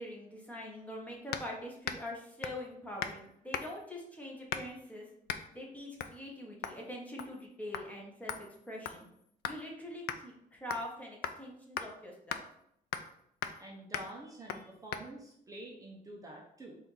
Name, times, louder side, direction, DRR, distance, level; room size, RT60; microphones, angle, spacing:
voice 1, 0.0-5.1 5.5-9.1 9.5-12.4, left 1 dB, 10° left, -2 dB, 1.0 m, -44 dB
sound 1, 1.3-1.5 1.8-2.1 2.4-2.7 3.0-3.2 3.5-3.9 4.5-4.8 5.3-5.5 6.0-6.2 6.6-6.8 7.2-7.5 7.7-7.9 8.3-9.6 10.1-10.2 10.7-10.9 11.2-11.4 11.8-11.9 12.3-12.4 12.9-13.1 13.4-13.6 13.9-14.1 14.5-14.6 14.9-15.0, left 9 dB, 85° left, 0.4 m, -39 dB
voice 2, 13.6-16.8, right 1 dB, 20° right, -2 dB, 0.7 m, -47 dB
4.3 x 2.6 x 3.9 m, 0.73 s
cardioid pair, 135°, 16 cm